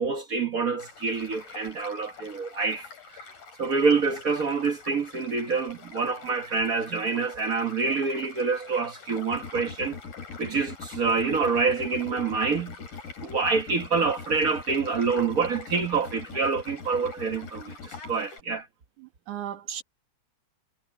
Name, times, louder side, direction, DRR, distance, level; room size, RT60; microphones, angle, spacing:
voice 1, 0.0-3.2 3.6-10.0 10.4-12.7 13.2-18.7, right 4 dB, 55° right, 1.0 m, -27 dB
Child speech kid speaking / Stream / Car passing by, 0.8-18.4, left 4 dB, 80° left, 6.9 m, -47 dB
sound 1, 9.3-18.2, left 5 dB, 55° left, 0.9 m, -41 dB
voice 2, 19.0-19.8, right 10 dB, 80° right, 3.4 m, -36 dB
omnidirectional pair, 3.4 m